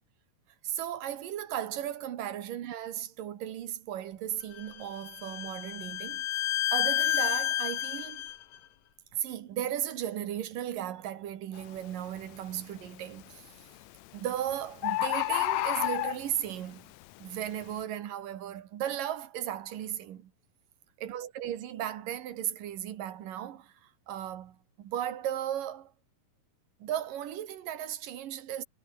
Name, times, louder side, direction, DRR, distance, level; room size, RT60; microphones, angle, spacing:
voice 1, 0.6-6.3 6.7-8.2 9.1-13.5 14.1-16.9 17.2-20.3 21.0-25.9 26.8-28.6, right 11 dB, 75° right, 3.3 m, -36 dB
Bowed string instrument, 4.6-8.4, left 12 dB, 60° left, 1.9 m, -30 dB
Bird, 11.6-11.8 12.3-12.8 13.8-13.9 14.2-14.3 14.5-14.6 14.8-16.5 17.1-17.2, left 17 dB, 85° left, 1.6 m, -29 dB
omnidirectional pair, 4.0 m